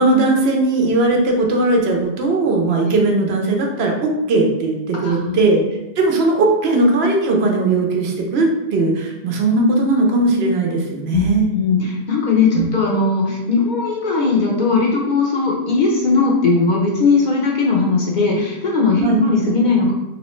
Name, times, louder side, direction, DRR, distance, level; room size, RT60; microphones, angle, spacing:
voice 1, 0.0-5.6 6.0-11.5 12.5-12.7 19.0-19.2, right 2 dB, 80° right, 0 dB, 0.9 m, -18 dB
voice 2, 4.9-5.4 11.1-19.9, left 4 dB, 50° left, -2 dB, 0.8 m, -18 dB
3.1 x 3.0 x 3.0 m, 0.97 s
omnidirectional pair, 1.1 m